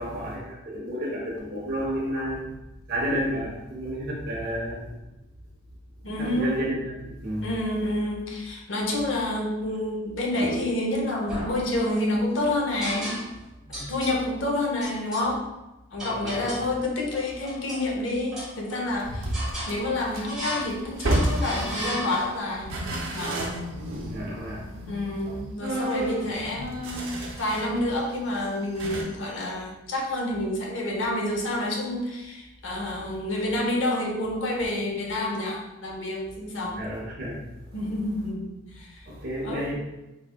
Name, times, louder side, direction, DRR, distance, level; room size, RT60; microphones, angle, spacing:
voice 1, 0.0-2.5 2.9-5.0 6.2-7.5 13.6-13.9 15.9-16.5 24.1-25.0 33.0-33.1 36.7-37.8 39.1-39.7, equal, 55° right, -3 dB, 0.9 m, -32 dB
voice 2, 6.0-6.6 7.4-13.2 13.7-15.5 15.9-19.3 19.7-22.8 23.1-23.4 24.9-36.8 37.7-39.1 39.4-39.7, left 1 dB, 75° left, -1 dB, 0.7 m, -28 dB
sound 1, 10.3-10.9 11.3-12.1 12.8-13.4 13.7-14.2 14.8-15.3 16.0-16.7 17.1-17.9 18.3-18.9 19.3-19.8 20.3-20.7 21.0-22.5, right 1 dB, 5° right, 1.2 m, -35 dB
sound 2, 19.0-22.2 22.6-27.8 28.1-28.2 28.8-29.0, right 1 dB, 85° right, 0.7 m, -31 dB
3.5 x 3.1 x 2.2 m, 0.98 s
head